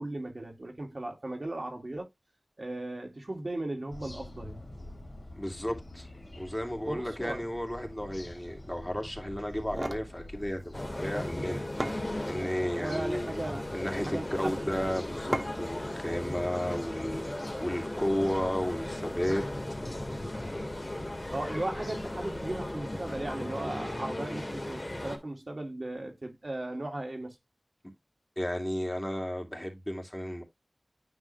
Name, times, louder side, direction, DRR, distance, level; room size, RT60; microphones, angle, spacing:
voice 1, 0.0-2.1 2.6-4.6 6.8-7.4 12.6-13.7 14.0-14.7 21.3-27.4, right 1 dB, 60° right, 2.4 m, -37 dB
sound 1, 3.9-23.3, left 1 dB, 60° left, 2.7 m, -48 dB
voice 2, 5.3-6.1 6.4-11.7 12.2-13.3 13.7-19.4 28.4-30.4, equal, 15° left, 2.6 m, -33 dB
sound 2, 9.5-10.1 11.4-11.5 11.8-12.6 13.3-13.7 15.3-15.8, right 1 dB, 30° right, 1.3 m, -35 dB
sound 3, 10.7-25.2, left 1 dB, 35° left, 2.1 m, -37 dB
9.8 x 3.8 x 3.3 m
wide cardioid pair, 45°, 0 cm